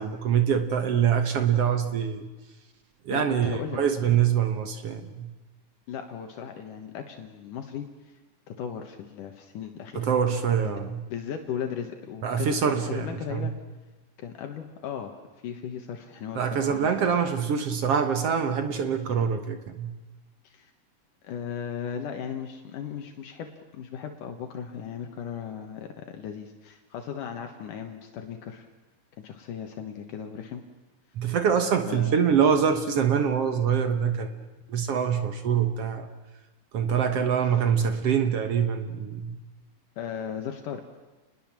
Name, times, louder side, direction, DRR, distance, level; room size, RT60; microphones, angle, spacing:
voice 1, 0.0-2.3 3.0-5.3 9.9-11.0 12.2-13.5 16.4-20.0 31.2-34.3 34.7-36.1 36.7-39.4, right 7 dB, 55° right, 1.9 m, -25 dB
voice 2, 3.1-3.8 5.9-8.2 8.5-10.0 11.1-13.5 14.2-16.9 20.4-20.7 21.2-28.7 29.2-30.6 31.9-32.1 40.0-40.8, left 8 dB, 75° left, 2.9 m, -36 dB
28.5 x 20.5 x 7.5 m
omnidirectional pair, 3.8 m